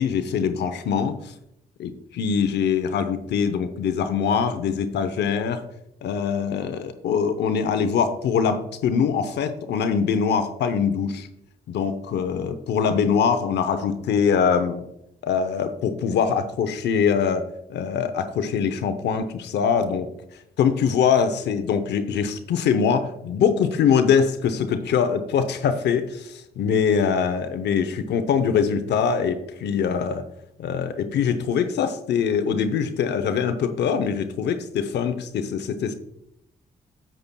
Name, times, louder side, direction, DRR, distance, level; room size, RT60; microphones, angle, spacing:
voice 1, 0.0-1.3 1.8-5.6 6.0-11.3 11.7-14.8 15.2-17.4 17.7-20.1 20.6-30.2 30.6-35.9, left 6 dB, 80° left, 9 dB, 0.7 m, -23 dB
9.8 x 7.5 x 2.3 m, 0.77 s
supercardioid pair, 50°, 17 cm